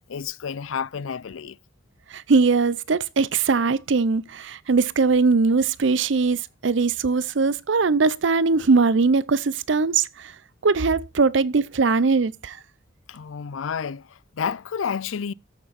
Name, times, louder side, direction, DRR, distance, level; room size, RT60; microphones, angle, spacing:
voice 1, 0.1-1.6 13.1-15.3, left 6 dB, 85° left, 0.5 m, -30 dB
voice 2, 2.1-10.3 10.6-12.6, right 4 dB, 65° right, 0.6 m, -21 dB
13.5 x 6.8 x 4.1 m
head